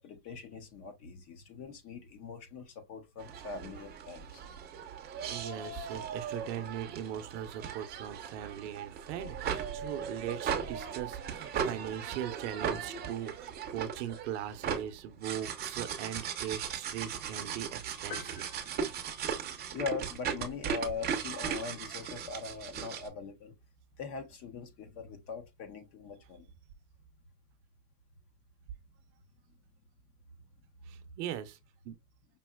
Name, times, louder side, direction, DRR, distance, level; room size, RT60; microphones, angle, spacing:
voice 1, 0.0-4.4 19.7-23.5 24.0-26.5, left 5 dB, 30° left, 0.8 m, -41 dB
sound 1, 3.2-23.1, right 7 dB, 20° right, 0.8 m, -38 dB
voice 2, 5.2-18.5 30.9-31.6 31.8-31.9, right 10 dB, 45° right, 0.8 m, -40 dB
sound 2, 18.1-19.9, left 9 dB, 90° left, 0.7 m, -49 dB
5.4 x 2.7 x 2.3 m
hypercardioid pair, 130°, 48 cm